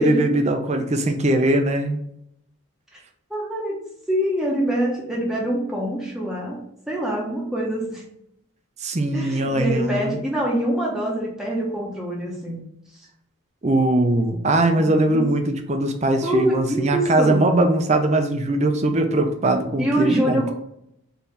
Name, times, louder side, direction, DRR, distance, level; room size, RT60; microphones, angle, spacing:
voice 1, 0.0-2.0 8.8-10.2 13.6-20.5, right 1 dB, 30° right, 6 dB, 0.4 m, -21 dB
voice 2, 3.3-3.8 4.1-6.6 6.9-8.0 9.1-12.6 16.2-17.5 19.8-20.5, right 1 dB, ahead, -4 dB, 0.8 m, -25 dB
4.5 x 2.7 x 3.3 m, 0.76 s
head